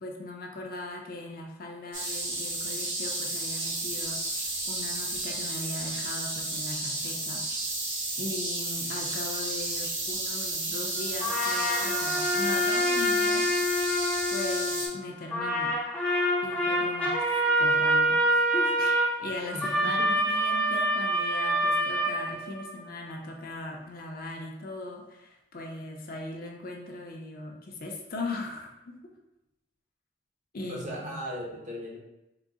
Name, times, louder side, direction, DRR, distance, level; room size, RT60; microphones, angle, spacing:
voice 1, 0.0-7.7 8.2-13.5 14.3-15.7 16.4-29.0 30.5-31.1, left 2 dB, 50° left, 1 dB, 0.6 m, -39 dB
sound 1, 1.9-14.9, right 2 dB, 85° right, 1.2 m, -32 dB
sound 2, 11.2-15.0 15.3-22.8, equal, 5° left, 0.5 m, -26 dB
voice 2, 19.5-20.1 30.7-32.0, equal, 45° right, -3 dB, 0.9 m, -37 dB
3.8 x 2.0 x 3.6 m, 0.92 s
head